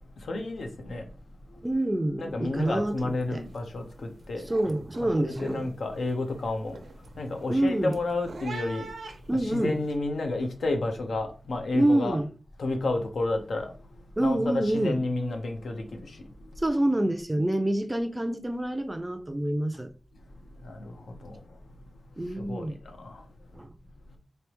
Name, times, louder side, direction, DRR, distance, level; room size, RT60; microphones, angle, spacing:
voice 1, 0.0-1.1 1.5-1.6 2.2-4.5 5.0-8.9 9.3-12.2 12.6-16.6 20.1-23.3 24.1-24.2, left 2 dB, 85° left, 0.8 m, -32 dB
voice 2, 1.6-3.4 4.5-5.6 7.5-8.0 9.3-9.7 11.7-12.3 14.2-15.0 16.6-19.9 22.2-22.8 23.5-23.7, right 1 dB, 15° right, 0.4 m, -27 dB
sound 1, 2.6-2.9 3.1-3.6 4.0-9.9, right 3 dB, 85° right, 0.7 m, -45 dB
4.0 x 3.3 x 3.0 m
wide cardioid pair, 105°, 0 cm